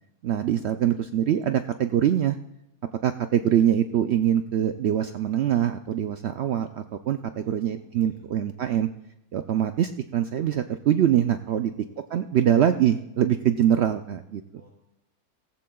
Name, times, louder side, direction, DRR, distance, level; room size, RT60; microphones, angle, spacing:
voice 1, 0.2-2.4 3.0-8.9 9.3-11.7 12.1-14.4, right 10 dB, 70° right, 8 dB, 0.6 m, -23 dB
voice 2, 7.4-8.3 11.5-11.8 14.5-14.7, equal, 55° left, -5 dB, 6.5 m, -54 dB
17.5 x 15.0 x 2.3 m, 0.87 s
omnidirectional pair, 1.6 m